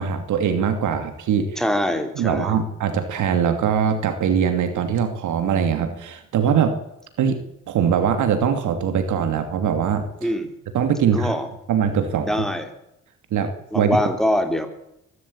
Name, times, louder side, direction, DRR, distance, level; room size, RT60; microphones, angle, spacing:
voice 1, 0.0-1.6 2.2-6.8 7.2-7.4 7.7-10.3 10.7-11.3 11.7-12.3 13.3-13.9, right 7 dB, 75° right, 8 dB, 2.8 m, -22 dB
voice 2, 1.6-2.6 10.2-10.5 11.1-11.5 12.2-12.7 13.7-14.7, equal, ahead, 6 dB, 3.8 m, -23 dB
22.5 x 13.0 x 8.8 m, 0.83 s
cardioid pair, 90°, 30 cm